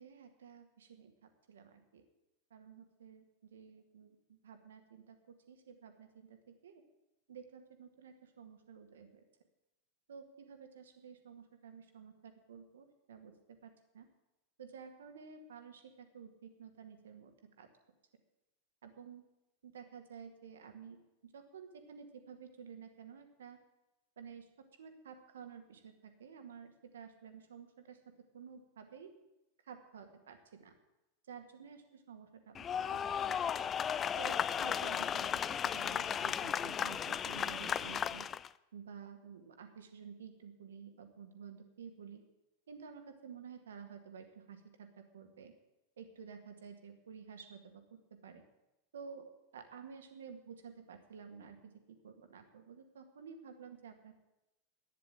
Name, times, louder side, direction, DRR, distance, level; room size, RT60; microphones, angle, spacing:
voice 1, 0.0-2.0 2.5-6.8 7.3-9.2 10.1-14.1 14.6-17.3 17.6-17.7 18.8-19.2 19.6-23.6 24.2-29.1 29.7-30.7 31.3-33.0 33.3-33.5 34.2-38.3 38.7-42.2 42.7-45.5 46.0-48.4 48.9-54.1, right 6 dB, 65° right, 6 dB, 2.0 m, -52 dB
sound 1, 32.5-38.5, left 8 dB, 25° left, 0.4 m, -35 dB
12.0 x 10.0 x 8.7 m, 0.96 s
figure-of-eight pair, 90°, 0 cm